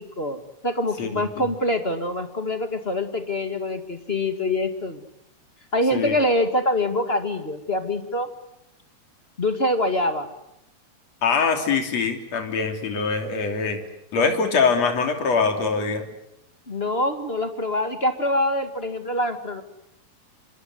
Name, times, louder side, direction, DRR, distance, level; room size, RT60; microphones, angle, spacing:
voice 1, 0.0-5.0 5.7-8.3 9.4-10.3 16.7-19.6, left 1 dB, 25° left, 7 dB, 1.8 m, -25 dB
voice 2, 11.2-13.8 14.1-16.0, left 5 dB, 60° left, 5 dB, 4.3 m, -23 dB
25.5 x 25.0 x 7.9 m, 0.84 s
omnidirectional pair, 3.4 m